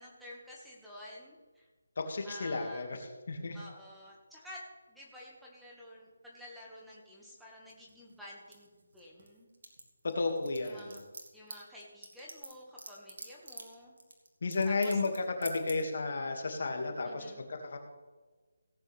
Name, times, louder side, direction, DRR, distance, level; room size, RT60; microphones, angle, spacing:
voice 1, 0.0-1.7 2.2-2.9 3.5-4.6 4.9-8.7 8.9-9.5 10.6-11.1 11.3-14.0 14.6-15.0 17.0-17.4, left 1 dB, ahead, -5 dB, 1.8 m, -50 dB
voice 2, 2.0-3.0 3.3-3.6 10.0-10.9 14.4-17.8, left 3 dB, 55° left, 4 dB, 2.2 m, -33 dB
sound 1, 7.7-9.3 9.5-15.2 15.4-15.8, right 3 dB, 65° right, 2.5 m, -45 dB
17.5 x 9.2 x 3.5 m, 1.3 s
figure-of-eight pair, 160°, 0 cm